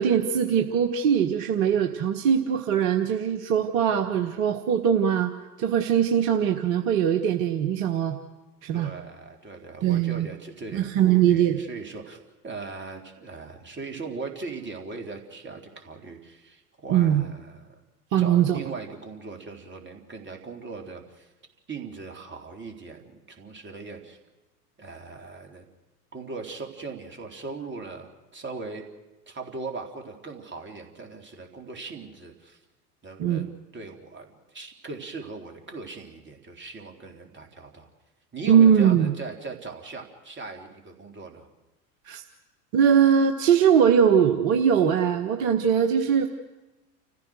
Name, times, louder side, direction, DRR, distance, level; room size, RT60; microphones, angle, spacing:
voice 1, 0.0-5.3 5.6-8.1 8.6-8.9 9.8-10.3 10.7-11.6 16.9-17.2 18.1-18.6 33.2-33.5 38.5-39.1 42.0-42.2 42.7-46.3, right 8 dB, 55° right, 6 dB, 1.5 m, -21 dB
voice 2, 8.7-17.8 18.2-21.3 21.7-24.2 24.8-25.7 26.1-28.9 29.3-32.6 33.0-37.9 38.3-41.5, right 4 dB, 25° right, 3 dB, 3.6 m, -39 dB
29.5 x 15.0 x 6.5 m, 1.1 s
figure-of-eight pair, 80°, 48 cm